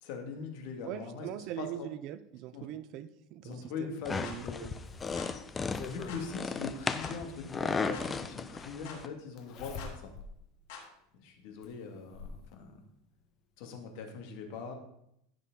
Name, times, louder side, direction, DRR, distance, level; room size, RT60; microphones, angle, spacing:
voice 1, 0.0-1.3 1.6-1.9 2.5-2.7 3.4-4.7 5.9-10.1 11.2-12.8 13.6-14.7, left 5 dB, 60° left, 4 dB, 2.3 m, -41 dB
voice 2, 0.8-4.7, right 11 dB, 45° right, 14 dB, 0.6 m, -42 dB
sound 1, 4.0-9.1, left 4 dB, 15° left, 0.6 m, -36 dB
sound 2, 4.2-4.4 5.2-5.3 6.1-6.3 7.0-7.2 7.9-8.1 8.8-9.0 9.8-10.0 10.7-10.9, left 6 dB, 75° left, 5.0 m, -46 dB
Zipper (clothing), 4.4-6.2 7.6-7.7 9.4-10.3 10.8-10.9 11.6-12.4 13.6-13.7 14.1-14.2, left 5 dB, 35° left, 1.3 m, -45 dB
15.5 x 6.5 x 3.9 m, 0.76 s
supercardioid pair, 155°, 0 cm